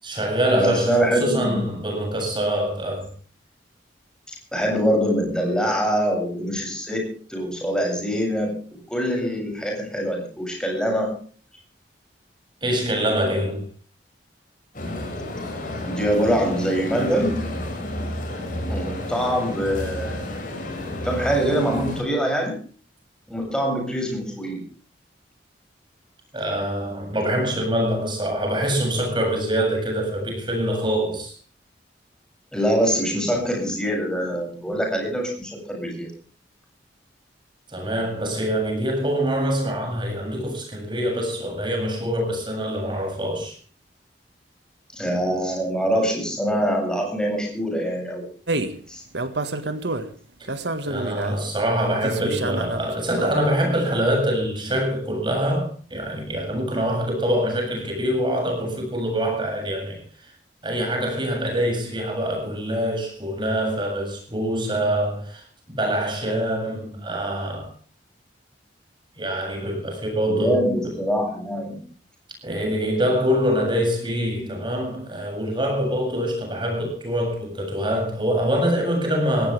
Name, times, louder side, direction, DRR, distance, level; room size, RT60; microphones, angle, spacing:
voice 1, 0.0-3.1 12.6-13.6 26.3-31.3 37.7-43.6 50.9-60.0 60.6-67.7 69.2-71.0 72.4-79.5, equal, 25° right, 7.8 m, -24 dB
voice 2, 0.6-1.6 4.5-11.2 15.8-17.5 18.7-20.3 21.0-22.5 23.3-24.6 32.5-36.1 44.9-48.3 48.9-49.0 70.3-71.8, equal, 5° left, 7.9 m, -24 dB
sound 1, 14.7-22.0, left 1 dB, 50° left, 6.7 m, -31 dB
sound 2, 48.5-48.8 49.1-50.1 50.5-51.4 52.0-53.5, right 2 dB, 70° right, 1.9 m, -28 dB
20.0 x 17.5 x 3.5 m
head